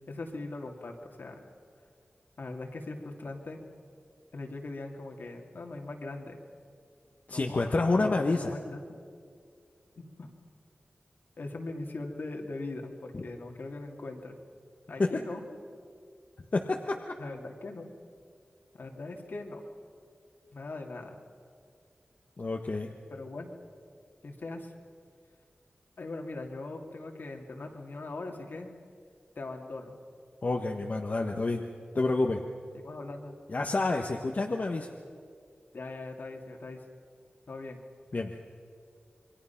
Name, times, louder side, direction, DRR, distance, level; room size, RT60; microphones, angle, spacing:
voice 1, 0.1-1.4 2.4-3.6 4.3-6.4 7.3-9.0 10.0-10.3 11.4-14.4 14.9-15.4 17.2-17.9 18.7-19.6 20.5-21.2 23.1-23.5 24.2-24.7 26.0-28.7 29.4-29.9 32.8-33.4 35.7-36.8 37.5-37.8, left 2 dB, 70° left, 2 dB, 2.5 m, -40 dB
voice 2, 7.3-8.5 13.1-13.2 15.0-15.1 16.5-17.0 22.4-22.9 30.4-31.6 31.9-32.4 33.5-34.9 38.1-38.3, left 3 dB, 50° left, 2 dB, 1.2 m, -28 dB
27.5 x 22.0 x 5.9 m, 2.2 s
wide cardioid pair, 65°, 3 cm